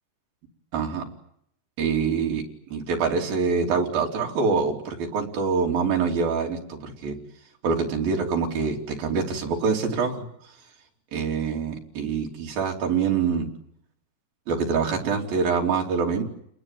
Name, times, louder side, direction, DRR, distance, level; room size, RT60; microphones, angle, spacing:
voice 1, 0.7-1.1 1.8-2.4 2.7-7.2 7.6-10.2 11.1-13.5 14.5-16.2, right 5 dB, 60° right, 1 dB, 4.8 m, -25 dB
29.0 x 21.0 x 9.2 m, 0.73 s
omnidirectional pair, 4.8 m